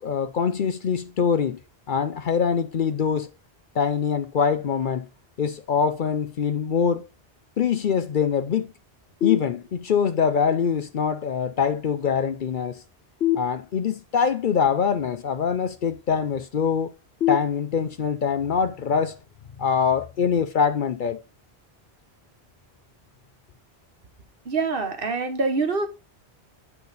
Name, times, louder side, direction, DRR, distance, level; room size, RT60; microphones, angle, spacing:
voice 1, 0.0-1.6 1.9-3.3 3.7-5.1 5.4-7.1 7.6-8.7 9.2-12.8 13.4-16.9 17.3-19.2 19.6-21.2, left 6 dB, 55° left, 0.7 m, -24 dB
sound 1, 9.2-10.2 13.2-14.2 17.2-18.2, left 13 dB, 75° left, 1.3 m, -27 dB
voice 2, 24.5-25.9, right 4 dB, 60° right, 1.3 m, -25 dB
8.4 x 4.4 x 4.0 m
omnidirectional pair, 1.1 m